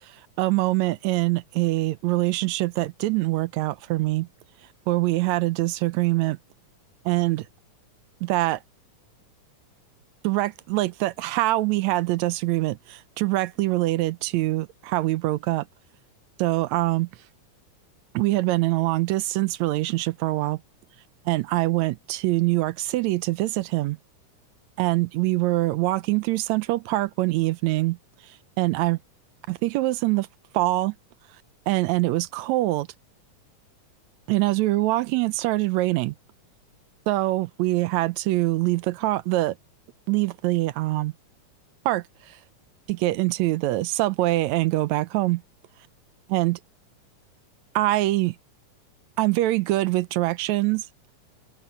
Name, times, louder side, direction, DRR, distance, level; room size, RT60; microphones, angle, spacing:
voice 1, 0.4-4.3 4.9-6.4 7.1-7.5 8.2-8.6 10.2-15.7 16.4-17.1 18.1-20.6 21.3-24.0 24.8-28.0 28.6-29.0 29.5-30.3 30.5-30.9 31.7-32.9 34.3-36.1 37.1-39.6 40.1-41.1 41.9-42.0 42.9-45.4 46.3-46.6 47.8-48.4 49.2-50.9, right 18 dB, 75° right, 1.8 m, -24 dB
open air
omnidirectional pair, 3.6 m